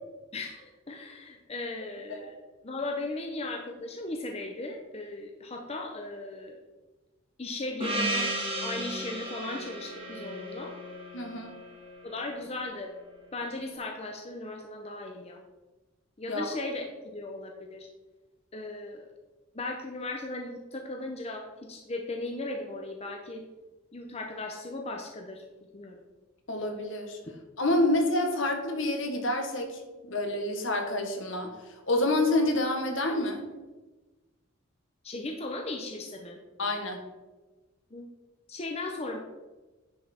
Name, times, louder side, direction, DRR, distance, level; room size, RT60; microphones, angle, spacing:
voice 1, 0.3-2.4 2.6-6.6 7.4-8.4 8.6-10.8 12.0-12.9 13.3-15.4 16.2-17.9 18.5-19.1 19.5-23.4 23.9-25.4 25.7-26.0 35.0-36.4 37.9-38.1 38.5-39.2, left 2 dB, 30° left, 2 dB, 0.7 m, -37 dB
Gong, 7.8-12.6, right 1 dB, 25° right, 1.6 m, -34 dB
voice 2, 11.1-11.5 16.3-16.4 26.5-27.2 27.6-29.8 30.1-33.5 36.6-37.0, left 1 dB, 65° left, 4 dB, 1.4 m, -28 dB
10.0 x 5.4 x 4.3 m, 1.2 s
head